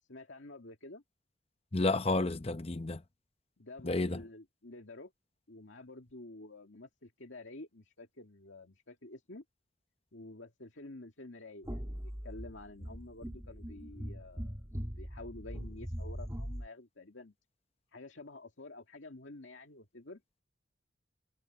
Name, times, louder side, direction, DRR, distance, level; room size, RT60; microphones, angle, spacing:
voice 1, 0.1-1.0 3.6-5.1 5.5-9.4 10.1-14.6 15.0-17.3 17.9-20.2, left 2 dB, 75° left, 2.2 m, -50 dB
voice 2, 1.7-3.0 3.8-4.2, left 2 dB, 30° left, 0.8 m, -31 dB
sound 1, 11.6-16.7, equal, 15° right, 2.1 m, -41 dB
head